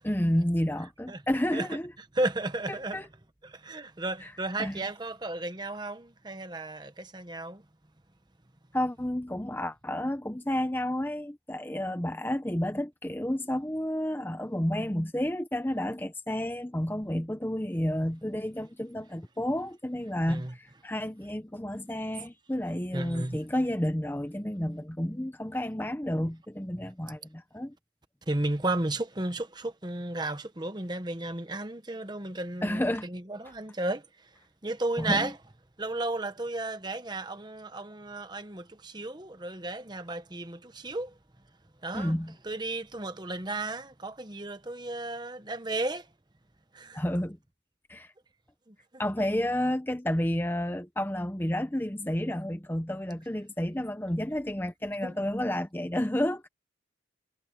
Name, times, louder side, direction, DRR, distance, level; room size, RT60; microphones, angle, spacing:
voice 1, 0.0-1.9 2.9-3.0 4.2-4.3 4.6-4.9 8.7-27.7 32.6-33.1 35.0-35.3 41.9-42.3 46.9-47.4 47.9-48.1 49.0-56.5, left 1 dB, 10° left, 0.8 m, -31 dB
voice 2, 2.1-3.0 3.4-7.6 20.3-20.5 22.9-23.4 28.3-34.3 34.6-35.3 35.8-41.2 41.8-42.1 42.4-46.1 46.7-47.0 48.7-48.8 55.0-55.1, right 2 dB, 20° right, 1.1 m, -34 dB
head